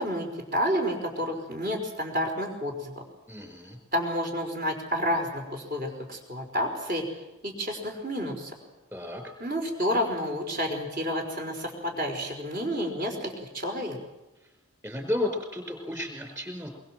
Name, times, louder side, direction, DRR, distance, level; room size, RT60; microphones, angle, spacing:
voice 1, 0.0-2.9 3.9-7.0 7.4-8.5 9.4-14.0, equal, 40° right, 2 dB, 5.2 m, -30 dB
voice 2, 3.3-3.8 8.9-9.3 14.4-14.5 14.8-16.7, left 1 dB, 15° right, 4 dB, 4.8 m, -33 dB
23.5 x 23.5 x 7.7 m, 1.0 s
head